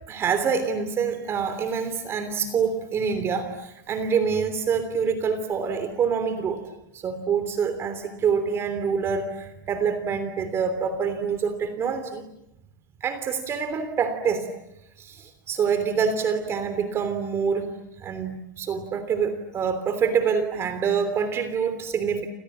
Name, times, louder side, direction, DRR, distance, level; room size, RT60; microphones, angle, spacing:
voice 1, 0.1-6.6 6.9-12.2 13.0-14.5 15.0-17.7 18.0-22.3, right 6 dB, 25° right, 10 dB, 3.1 m, -26 dB
28.5 x 28.0 x 7.4 m, 0.88 s
supercardioid pair, 145°, 10 cm